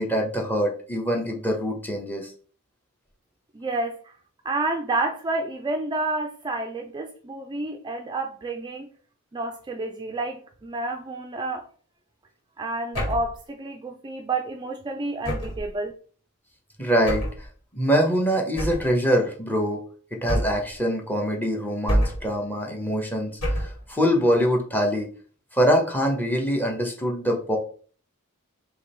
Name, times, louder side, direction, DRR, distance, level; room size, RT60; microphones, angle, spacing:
voice 1, 0.0-2.3 16.8-17.5 17.7-19.8 20.1-25.1 25.5-27.6, equal, 10° left, 1 dB, 0.9 m, -24 dB
voice 2, 3.6-4.0 4.5-8.9 9.3-11.6 12.6-15.9, right 2 dB, 20° right, 4 dB, 0.4 m, -29 dB
sound 1, 12.9-13.3 15.2-15.7 17.0-17.4 18.6-18.9 20.3-20.7 21.9-22.3 23.4-23.8, equal, 75° left, 2.0 m, -26 dB
3.6 x 2.9 x 4.3 m, 0.43 s
head